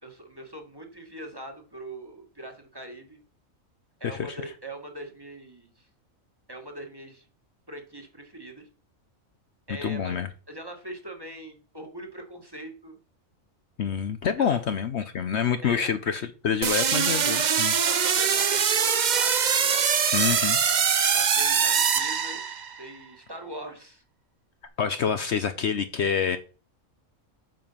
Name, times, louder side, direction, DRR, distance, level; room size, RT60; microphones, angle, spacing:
voice 1, 0.0-3.2 4.0-5.9 6.5-7.3 7.7-8.7 9.7-13.0 14.4-14.6 15.6-16.0 17.9-19.8 21.1-22.4 22.8-24.0, right 1 dB, 15° right, 3 dB, 1.8 m, -41 dB
voice 2, 4.0-4.4 9.8-10.3 13.8-17.7 20.1-20.6 24.8-26.4, left 7 dB, 60° left, 10 dB, 0.9 m, -27 dB
sound 1, 16.6-22.8, right 7 dB, 45° right, 0.7 m, -23 dB
7.8 x 7.1 x 5.7 m, 0.37 s
omnidirectional pair, 1.4 m